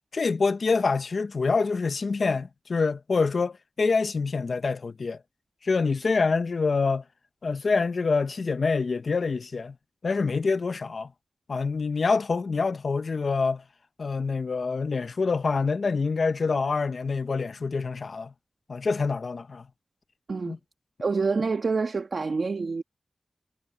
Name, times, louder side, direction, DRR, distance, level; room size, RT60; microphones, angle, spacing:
voice 1, 0.1-5.2 5.6-7.0 7.4-9.7 10.0-11.1 11.5-13.6 14.0-18.3 18.7-19.6 20.5-20.6, left 4 dB, 70° left, 0.6 m, -26 dB
voice 2, 21.0-22.8, right 4 dB, 65° right, 1.2 m, -27 dB
wide cardioid pair, 85°, 0 cm